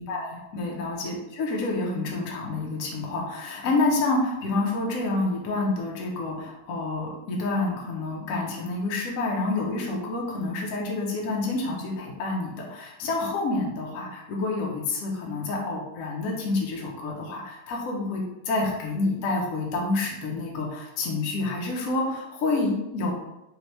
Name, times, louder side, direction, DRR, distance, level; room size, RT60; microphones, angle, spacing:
voice 1, 0.0-23.1, left 2 dB, 70° left, -1 dB, 0.8 m, -28 dB
3.5 x 3.2 x 2.9 m, 0.93 s
omnidirectional pair, 2.3 m